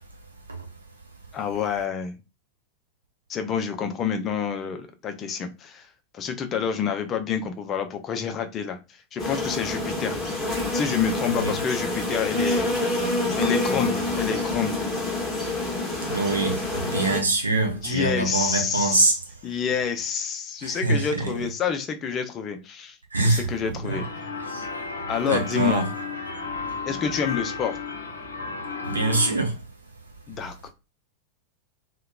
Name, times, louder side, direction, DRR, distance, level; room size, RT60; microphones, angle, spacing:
voice 1, 1.3-2.2 3.3-5.9 6.1-8.8 9.1-10.2 10.7-13.0 13.4-14.7 17.7-19.2 19.4-23.0 23.2-24.0 25.1-25.9 26.9-27.8 30.3-30.7, left 7 dB, 30° left, 0.4 m, -28 dB
sound 1, 9.2-17.2, left 2 dB, 10° left, 1.0 m, -27 dB
voice 2, 16.0-19.1 20.6-21.5 23.1-23.5 23.8-24.0 24.5-24.6 25.3-25.9 28.8-29.6, right 2 dB, 80° right, 0.7 m, -24 dB
sound 2, 23.9-29.3, left 4 dB, 75° left, 0.6 m, -33 dB
2.8 x 2.1 x 2.3 m
figure-of-eight pair, 90°, 0 cm